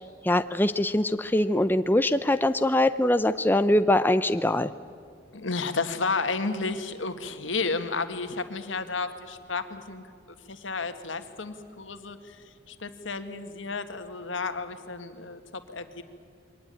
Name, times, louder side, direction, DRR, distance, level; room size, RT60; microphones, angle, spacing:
voice 1, 0.2-4.7, left 1 dB, 10° left, 11 dB, 0.5 m, -23 dB
voice 2, 5.3-10.0 10.5-16.0, left 4 dB, 85° left, 9 dB, 1.7 m, -32 dB
23.5 x 19.0 x 9.1 m, 2.3 s
head